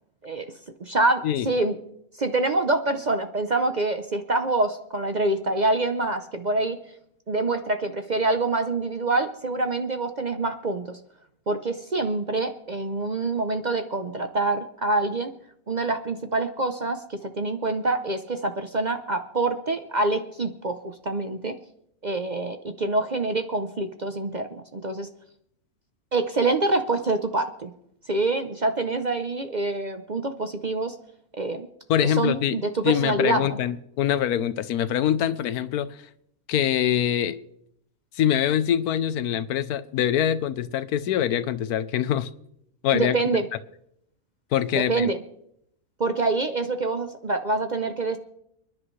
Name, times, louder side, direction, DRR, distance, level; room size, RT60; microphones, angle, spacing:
voice 1, 0.8-1.8 2.2-6.8 7.3-11.0 11.5-15.3 15.7-21.6 22.0-25.1 26.1-27.7 28.1-30.9 31.4-31.7 32.0-33.6 42.9-43.5 44.7-45.2 46.0-48.2, right 2 dB, 40° right, 8 dB, 0.7 m, -26 dB
voice 2, 31.9-32.6 32.8-36.0 36.5-37.4 38.1-42.3 42.8-43.2 44.5-45.1, left 10 dB, 90° left, 14 dB, 1.2 m, -24 dB
29.5 x 10.5 x 3.2 m, 0.74 s
omnidirectional pair, 1.6 m